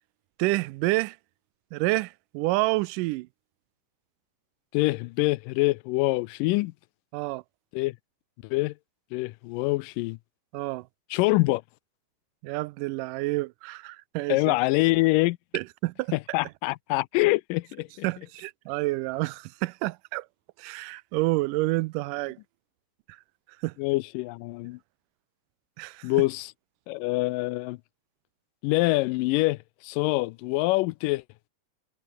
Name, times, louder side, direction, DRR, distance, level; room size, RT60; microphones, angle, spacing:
voice 1, 0.4-1.2 1.7-3.3 7.1-7.4 10.5-10.9 12.4-14.5 15.5-16.1 18.0-20.3 20.6-22.4 23.6-23.7 25.8-26.1, right 21 dB, 80° right, 2.1 m, -28 dB
voice 2, 4.7-6.7 7.7-8.0 8.4-8.7 9.1-10.2 11.1-11.6 14.3-15.4 16.1-18.1 23.8-24.8 26.0-26.5 26.9-27.8 28.6-31.2, left 21 dB, 85° left, 2.2 m, -25 dB
omnidirectional pair, 3.8 m